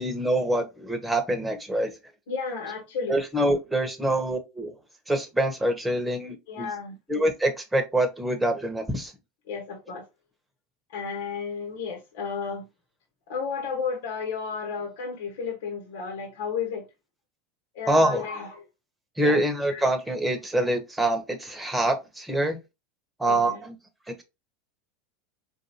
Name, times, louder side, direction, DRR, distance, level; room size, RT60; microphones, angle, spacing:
voice 1, 0.0-1.9 3.1-4.7 5.1-6.7 7.1-9.1 17.9-18.2 19.2-22.6 23.2-23.8 24.1-24.2, right 1 dB, 10° right, 1.1 m, -25 dB
voice 2, 2.3-3.2 6.5-7.0 9.5-10.0 10.9-12.6 13.3-16.8 17.7-18.5 19.2-19.4 19.7-19.9 23.2-23.6, left 5 dB, 75° left, 1.4 m, -32 dB
4.6 x 2.7 x 2.9 m
hypercardioid pair, 90°, 0 cm